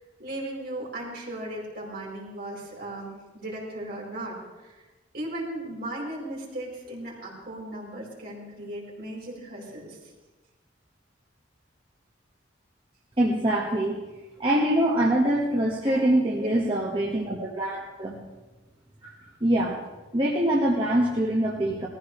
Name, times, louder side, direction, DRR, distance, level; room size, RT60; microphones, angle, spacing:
voice 1, 0.2-4.4 4.6-4.8 5.1-10.0 15.8-16.6, right 1 dB, 55° right, -4 dB, 4.7 m, -37 dB
voice 2, 13.2-14.0 14.4-18.2 19.0-19.1 19.4-19.8 20.1-21.9, right 1 dB, 25° right, -4 dB, 1.5 m, -24 dB
19.0 x 15.0 x 3.3 m, 1.1 s
head